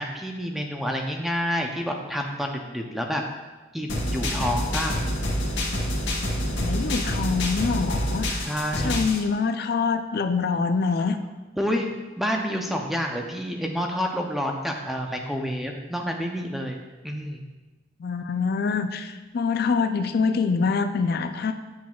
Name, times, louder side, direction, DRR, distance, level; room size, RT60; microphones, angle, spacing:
voice 1, 0.0-3.2 3.7-5.0 8.5-9.1 11.6-11.9 12.2-17.4, equal, ahead, 2 dB, 0.5 m, -28 dB
sound 1, 3.9-9.2, equal, 80° left, 1.2 m, -27 dB
voice 2, 6.5-8.5 8.7-11.2 18.0-21.5, left 5 dB, 55° left, 9 dB, 0.4 m, -25 dB
8.4 x 6.0 x 2.3 m, 1.2 s
head